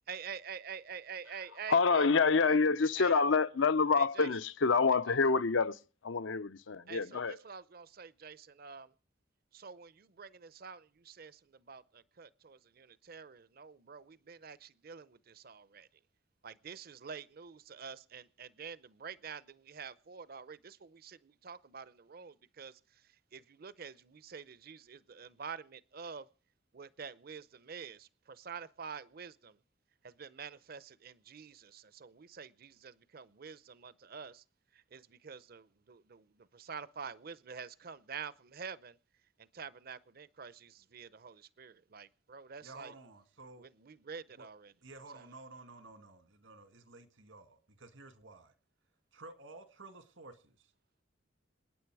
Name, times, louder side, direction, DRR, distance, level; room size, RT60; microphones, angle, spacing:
voice 1, 0.1-2.1 2.4-2.6 3.0-3.2 3.9-4.3 4.9-5.2 6.9-8.9 9.5-15.9 16.4-26.3 26.7-29.6 30.0-34.4 34.7-39.0 39.4-42.9 43.6-44.7 45.1-45.2, right 6 dB, 50° right, 0.7 m, -47 dB
voice 2, 1.7-5.8 6.0-7.4, left 4 dB, 80° left, 0.7 m, -27 dB
voice 3, 42.6-43.7 44.4-44.5 44.8-48.5 49.1-50.7, right 3 dB, 80° right, 2.0 m, -53 dB
27.5 x 9.5 x 4.7 m
head